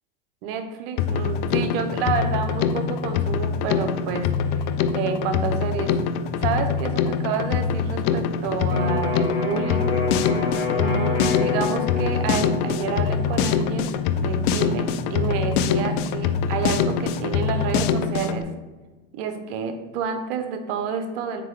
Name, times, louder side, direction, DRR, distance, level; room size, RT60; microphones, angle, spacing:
voice 1, 0.4-4.6 4.9-6.0 6.4-10.0 10.7-18.5 19.1-21.4, right 6 dB, 55° right, 7 dB, 0.8 m, -29 dB
Drum kit, 1.0-18.4, left 7 dB, 50° left, 0.4 m, -24 dB
Electric guitar, 8.7-16.5, left 4 dB, 90° left, 1.2 m, -29 dB
4.4 x 3.7 x 3.2 m, 1.3 s
hypercardioid pair, 105°, 33 cm